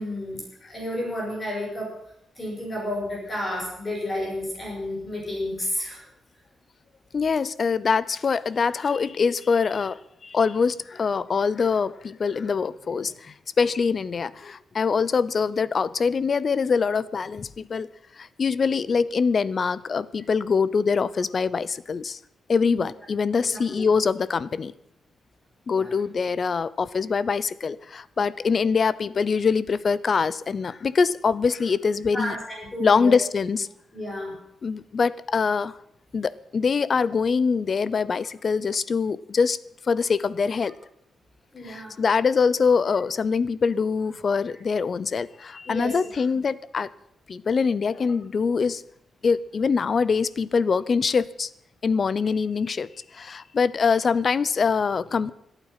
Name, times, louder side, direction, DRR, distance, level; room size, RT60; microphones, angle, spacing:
voice 1, 0.0-1.9 2.3-6.0 22.6-22.8 23.5-23.9 25.7-25.9 32.1-33.1 33.9-34.4 41.5-41.9 45.6-46.0, left 1 dB, 25° left, -3 dB, 6.5 m, -31 dB
voice 2, 7.1-17.9 18.2-22.2 22.5-24.7 25.7-32.3 32.8-33.7 34.6-35.8 36.1-39.6 39.9-40.7 41.6-46.9 47.3-48.8 49.2-51.5 51.8-55.3, left 5 dB, 40° left, 19 dB, 0.5 m, -24 dB
25.5 x 9.0 x 5.7 m, 0.76 s
wide cardioid pair, 155°, 0 cm